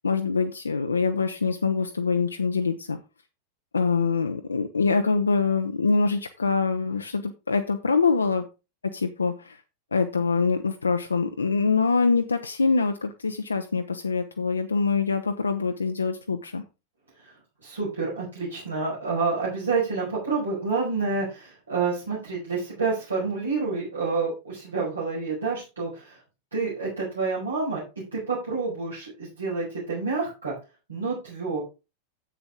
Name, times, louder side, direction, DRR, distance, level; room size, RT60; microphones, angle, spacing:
voice 1, 0.0-3.0 3.7-8.4 8.9-9.6 9.9-16.6, left 4 dB, 75° left, 7 dB, 0.7 m, -24 dB
voice 2, 17.6-26.2 26.5-27.8 28.1-30.5 30.9-31.6, right 4 dB, 75° right, -6 dB, 5.2 m, -28 dB
10.0 x 8.1 x 3.6 m, 0.29 s
figure-of-eight pair, 90°, 0 cm